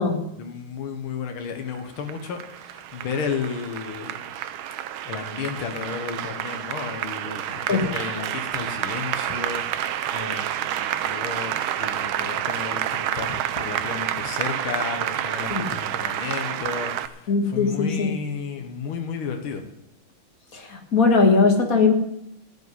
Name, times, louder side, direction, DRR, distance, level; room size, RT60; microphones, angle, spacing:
voice 1, 0.4-4.3 5.1-19.7, left 6 dB, 80° left, 5 dB, 2.1 m, -33 dB
Applause, 1.7-17.1, right 11 dB, 80° right, 1.5 m, -29 dB
voice 2, 17.3-18.1 20.5-21.9, left 4 dB, 45° left, 3 dB, 2.0 m, -20 dB
14.5 x 5.5 x 9.7 m, 0.80 s
omnidirectional pair, 2.3 m